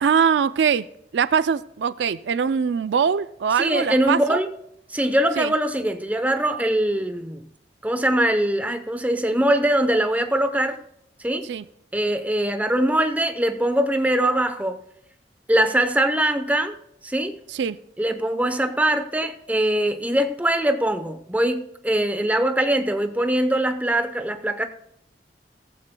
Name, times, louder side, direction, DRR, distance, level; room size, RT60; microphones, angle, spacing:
voice 1, 0.0-0.9 1.1-4.4 5.4-5.5 11.5-11.6 17.5-17.8, right 6 dB, 75° right, 15 dB, 0.4 m, -22 dB
voice 2, 3.6-4.5 4.9-7.5 7.8-10.8 11.2-11.5 11.9-14.8 15.5-16.7 17.0-17.4 18.0-24.6, right 1 dB, 10° right, 7 dB, 0.8 m, -22 dB
17.0 x 15.0 x 2.2 m, 0.76 s
head